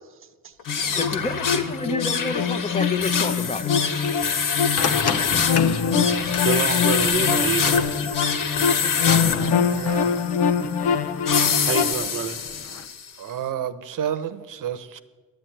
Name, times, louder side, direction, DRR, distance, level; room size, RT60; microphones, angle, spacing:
sound 1, 0.6-13.1, left 6 dB, 65° left, 1.7 m, -26 dB
sound 2, 0.7-11.9, left 6 dB, 80° left, 1.1 m, -24 dB
voice 1, 0.9-3.7, left 3 dB, 20° left, 1.0 m, -29 dB
sound 3, 4.8-12.9, left 7 dB, 45° left, 0.8 m, -32 dB
voice 2, 6.3-7.9 11.6-12.4, right 6 dB, 35° right, 0.9 m, -27 dB
voice 3, 9.6-10.1 13.2-15.0, right 9 dB, 60° right, 1.0 m, -30 dB
11.0 x 9.4 x 9.2 m
cardioid pair, 75°, 36 cm